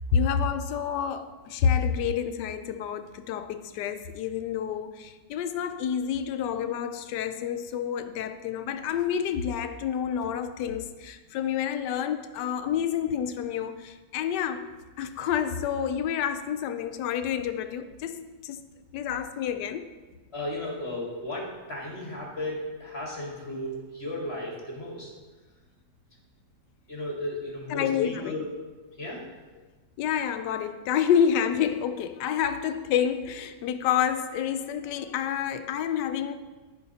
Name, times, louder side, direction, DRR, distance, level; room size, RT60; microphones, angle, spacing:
voice 1, 0.1-14.7 15.0-18.6 18.9-19.9 27.7-28.4 30.0-36.3, left 8 dB, 80° left, 10 dB, 1.2 m, -28 dB
voice 2, 20.3-25.1 26.9-28.5 29.0-29.2, left 1 dB, 40° left, -3 dB, 1.9 m, -35 dB
14.0 x 5.1 x 2.8 m, 1.3 s
omnidirectional pair, 1.8 m